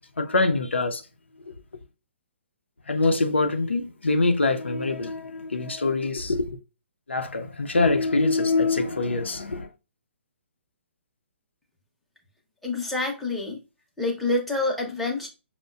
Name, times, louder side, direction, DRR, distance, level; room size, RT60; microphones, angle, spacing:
voice 1, 0.2-1.0 1.5-1.6 2.9-6.6 7.1-9.7, left 3 dB, 75° left, 0.5 m, -24 dB
voice 2, 12.6-13.6 14.0-15.3, left 2 dB, ahead, 0.7 m, -27 dB
5.6 x 2.1 x 2.3 m
figure-of-eight pair, 130°, 6 cm